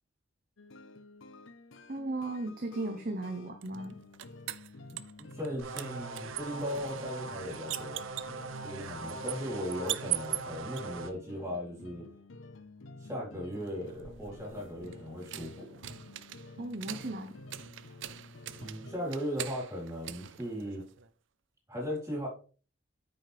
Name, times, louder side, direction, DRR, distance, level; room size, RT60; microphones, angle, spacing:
sound 1, 0.6-19.3, left 2 dB, 75° left, 0.7 m, -51 dB
voice 1, 1.9-4.0 16.6-17.3, right 2 dB, 45° right, 5 dB, 0.9 m, -36 dB
sound 2, 3.6-5.5 5.8-10.8 13.6-21.1, right 15 dB, 70° right, 0.5 m, -41 dB
voice 2, 5.2-8.0 8.6-12.1 13.0-15.8 18.6-20.8 21.7-22.3, equal, 15° right, -4 dB, 4.1 m, -37 dB
sound 3, 5.6-11.1, right 3 dB, 90° right, 0.9 m, -41 dB
9.1 x 6.4 x 3.4 m, 0.38 s
head